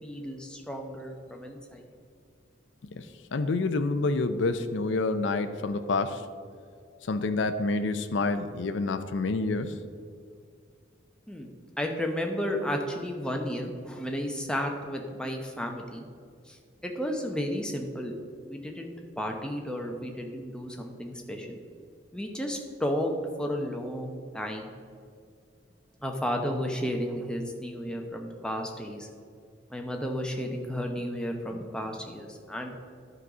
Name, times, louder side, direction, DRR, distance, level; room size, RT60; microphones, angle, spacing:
voice 1, 0.0-1.9 11.3-11.5 11.8-16.0 16.5-16.6 16.8-18.1 18.4-21.6 22.1-24.7 26.0-29.1 29.7-32.8, equal, 5° left, 2 dB, 0.7 m, -33 dB
voice 2, 2.9-6.2 7.1-9.8, left 3 dB, 70° left, 9 dB, 0.5 m, -28 dB
11.0 x 4.0 x 6.0 m, 2.2 s
head